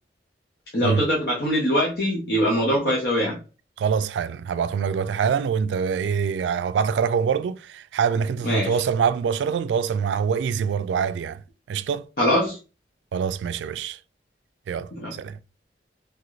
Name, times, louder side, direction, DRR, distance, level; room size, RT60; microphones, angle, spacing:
voice 1, 0.7-3.4 8.4-8.7 12.2-12.6 15.0-15.1, equal, 60° left, 0.8 m, -22 dB
voice 2, 3.8-11.4 11.7-12.1 13.1-14.0 14.7-15.4, right 6 dB, 90° right, 0.3 m, -25 dB
2.9 x 2.5 x 3.1 m
head